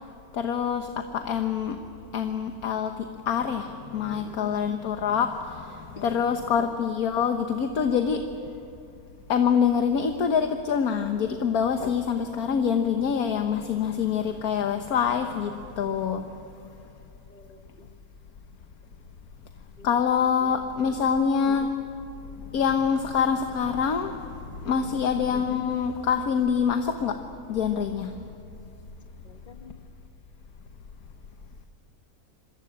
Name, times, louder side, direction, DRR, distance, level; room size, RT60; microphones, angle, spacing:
voice 1, 0.3-1.8 2.1-8.2 9.3-16.2 19.8-21.7 22.5-24.2 24.6-27.2 27.5-28.1, left 7 dB, 75° left, 6 dB, 1.6 m, -25 dB
voice 2, 4.1-4.6 5.9-6.4 17.3-17.9 19.8-19.9 20.8-21.1 24.7-25.1 29.2-29.8, left 4 dB, 35° left, 6 dB, 1.6 m, -44 dB
26.5 x 23.0 x 8.8 m, 2.6 s
omnidirectional pair, 1.6 m